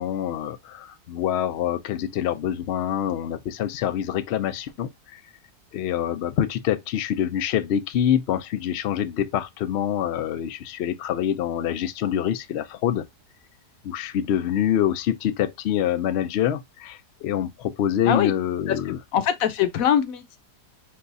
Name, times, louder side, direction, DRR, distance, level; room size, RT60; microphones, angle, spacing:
voice 1, 0.0-5.2 5.7-13.0 13.8-19.0, left 10 dB, 90° left, 0.5 m, -26 dB
voice 2, 18.7-20.4, left 9 dB, 65° left, 1.0 m, -23 dB
4.7 x 2.4 x 3.9 m
omnidirectional pair, 1.7 m